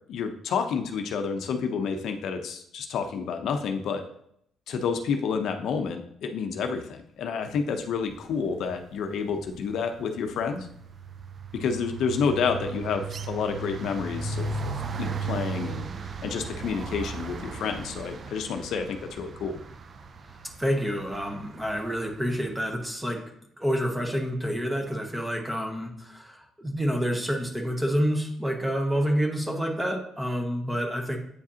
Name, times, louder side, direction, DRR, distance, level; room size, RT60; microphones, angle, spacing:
voice 1, 0.1-4.1 4.7-10.7 11.5-15.8 16.2-19.6, left 6 dB, 65° left, 6 dB, 0.6 m, -29 dB
sound 1, 8.4-8.8 9.1-22.2, right 4 dB, 35° right, 0.4 m, -37 dB
voice 2, 20.4-23.2 23.6-31.2, equal, 5° right, 4 dB, 0.8 m, -28 dB
8.3 x 4.9 x 2.8 m, 0.71 s
cardioid pair, 145°, 0 cm